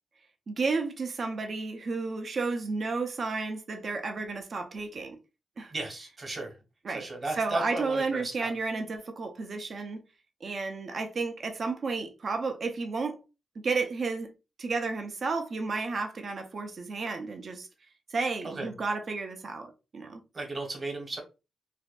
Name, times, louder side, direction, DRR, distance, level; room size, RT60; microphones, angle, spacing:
voice 1, 0.5-5.2 5.6-5.7 6.8-7.1 7.4-10.0 10.4-13.2 13.6-14.3 14.6-17.7 18.1-20.2, right 4 dB, 55° right, 0.5 m, -32 dB
voice 2, 5.7-6.6 6.9-8.5 18.4-18.7 20.3-21.2, right 2 dB, 40° right, 1.1 m, -35 dB
2.5 x 2.1 x 2.3 m
cardioid pair, 55°, 0 cm